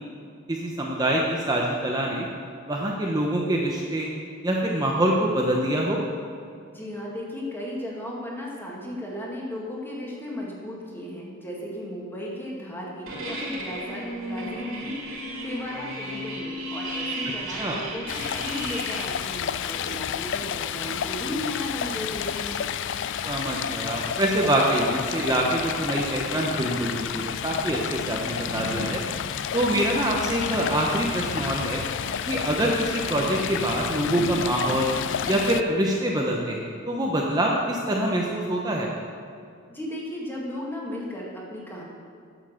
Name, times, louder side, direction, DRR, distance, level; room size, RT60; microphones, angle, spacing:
voice 1, 0.5-2.3 2.7-4.1 4.4-6.0 17.6-17.8 23.2-29.0 29.5-31.8 32.3-34.9 35.3-38.9, right 1 dB, 20° right, -2 dB, 0.9 m, -25 dB
voice 2, 6.7-22.7 39.7-41.8, left 1 dB, 10° left, -3 dB, 2.0 m, -35 dB
sound 1, 13.1-19.1, right 1 dB, 75° right, 2.7 m, -34 dB
Stream, 18.1-35.6, left 8 dB, 60° left, 0.4 m, -30 dB
9.3 x 7.2 x 6.5 m, 2.3 s
head